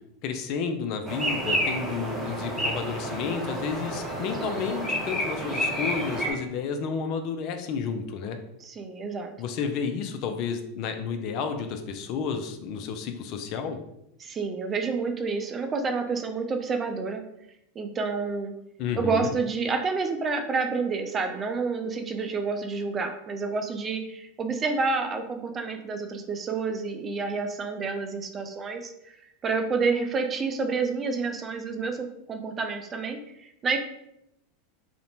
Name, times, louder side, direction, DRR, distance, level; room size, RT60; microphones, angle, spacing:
voice 1, 0.2-8.4 9.4-13.8 18.8-19.3, left 6 dB, 50° left, 7 dB, 0.3 m, -31 dB
sound 1, 1.1-6.3, equal, 5° right, 0.9 m, -30 dB
voice 2, 8.6-9.3 14.2-17.2 17.8-18.5 19.0-28.9 29.4-33.8, right 4 dB, 30° right, 6 dB, 0.4 m, -29 dB
2.5 x 2.1 x 2.8 m, 0.81 s
hypercardioid pair, 85°, 0 cm